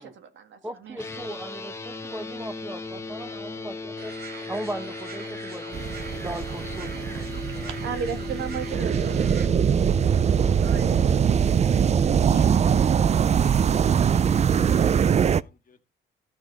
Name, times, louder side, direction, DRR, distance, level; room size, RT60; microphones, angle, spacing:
voice 1, 0.0-1.3 7.7-9.5 10.1-11.2, right 6 dB, 70° right, 1.8 m, -36 dB
voice 2, 0.6-4.1 4.5-5.8 6.1-7.7, right 1 dB, 10° right, 1.7 m, -37 dB
sound 1, 1.0-12.9, left 4 dB, 15° left, 1.2 m, -37 dB
sound 2, 4.0-9.5, right 6 dB, 50° right, 1.2 m, -43 dB
sound 3, 5.7-15.4, right 8 dB, 35° right, 0.4 m, -22 dB
voice 3, 12.2-12.8 13.3-15.8, left 5 dB, 45° left, 1.8 m, -50 dB
13.0 x 6.2 x 4.0 m
cardioid pair, 90°, 20 cm